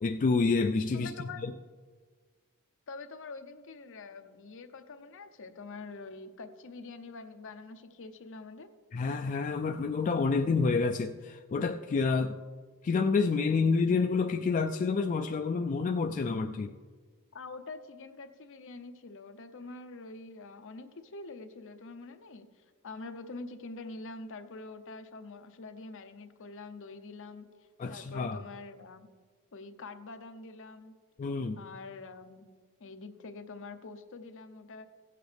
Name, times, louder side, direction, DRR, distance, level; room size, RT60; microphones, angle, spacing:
voice 1, 0.0-1.1 1.4-1.5 8.9-12.3 12.8-16.7 27.8-28.4 31.2-31.6, left 4 dB, 35° left, 5 dB, 0.3 m, -28 dB
voice 2, 0.9-1.4 2.9-8.7 17.3-22.5 22.8-29.1 29.5-30.9 31.6-32.4 32.8-34.8, left 3 dB, 60° left, 8 dB, 0.7 m, -45 dB
16.0 x 8.4 x 3.4 m, 1.5 s
head